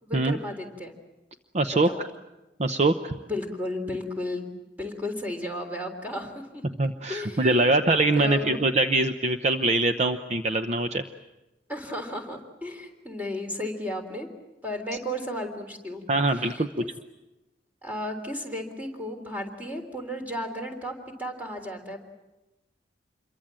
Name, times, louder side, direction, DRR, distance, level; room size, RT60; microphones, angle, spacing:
voice 1, 0.0-0.9 1.7-2.1 3.1-4.5 4.8-6.6 7.1-7.7 8.2-8.6 11.7-14.3 14.6-16.0 16.3-16.9 17.8-20.9 21.2-22.0, left 1 dB, 10° right, 4 dB, 3.6 m, -34 dB
voice 2, 1.5-2.1 2.6-3.2 6.8-11.0 16.1-16.8, right 2 dB, 40° right, 8 dB, 0.8 m, -23 dB
27.5 x 23.0 x 7.6 m, 1.0 s
head